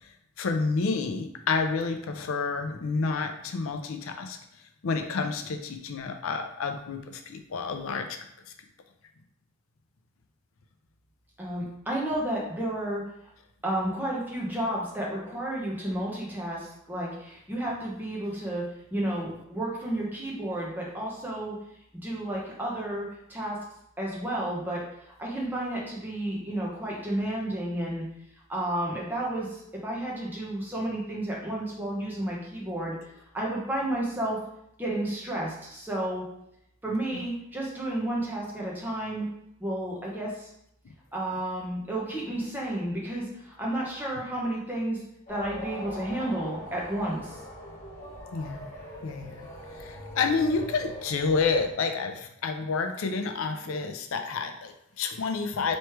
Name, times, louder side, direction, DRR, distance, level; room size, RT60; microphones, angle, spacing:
voice 1, 0.4-4.4 4.8-8.1 37.1-37.2 40.8-40.9 48.3-48.7 49.0-49.4 49.7-55.8, left 4 dB, 75° left, 6 dB, 0.4 m, -29 dB
voice 2, 11.4-13.0 13.6-18.6 18.9-21.6 22.0-23.6 24.0-24.8 25.2-28.0 28.5-33.0 33.3-34.4 34.8-36.2 36.8-39.2 39.6-40.5 41.1-45.0 45.3-47.4, right 1 dB, 10° right, -4 dB, 0.9 m, -31 dB
sound 1, 45.3-51.7, equal, 40° left, 1.4 m, -41 dB
3.1 x 3.1 x 4.5 m, 0.79 s
head